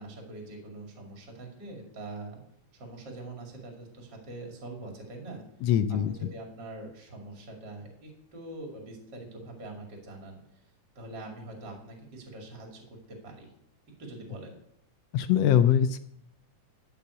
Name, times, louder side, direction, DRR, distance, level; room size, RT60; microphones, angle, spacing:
voice 1, 0.0-2.4 2.7-5.4 5.9-10.4 10.9-12.8 13.1-13.5 14.0-14.6, right 2 dB, 40° right, 1 dB, 2.8 m, -43 dB
voice 2, 5.6-6.1 15.1-16.0, left 9 dB, 80° left, 11 dB, 1.5 m, -22 dB
13.5 x 5.8 x 7.0 m, 0.76 s
omnidirectional pair, 3.3 m